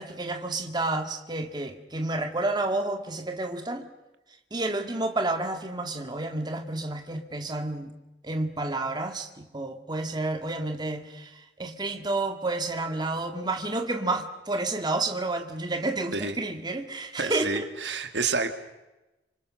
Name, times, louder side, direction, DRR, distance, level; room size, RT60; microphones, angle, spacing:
voice 1, 0.0-3.8 4.5-7.9 8.2-18.0, right 2 dB, 25° right, 5 dB, 2.0 m, -30 dB
voice 2, 17.2-18.5, right 4 dB, 85° right, 7 dB, 2.3 m, -29 dB
28.0 x 26.0 x 6.4 m, 1.0 s
head